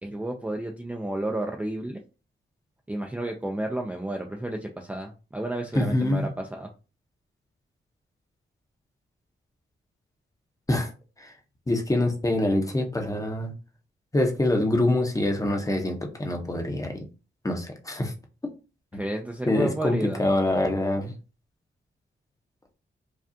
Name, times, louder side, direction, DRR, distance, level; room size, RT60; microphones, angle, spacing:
voice 1, 0.0-2.0 2.9-6.7 18.9-20.2, right 1 dB, 5° right, 1 dB, 0.4 m, -31 dB
voice 2, 5.7-6.3 10.7-10.9 11.2-11.3 11.7-13.5 14.1-17.1 17.4-18.1 19.5-21.1, left 1 dB, 15° left, 3 dB, 0.8 m, -25 dB
4.9 x 2.3 x 2.6 m, 0.32 s
wide cardioid pair, 125°, 20 cm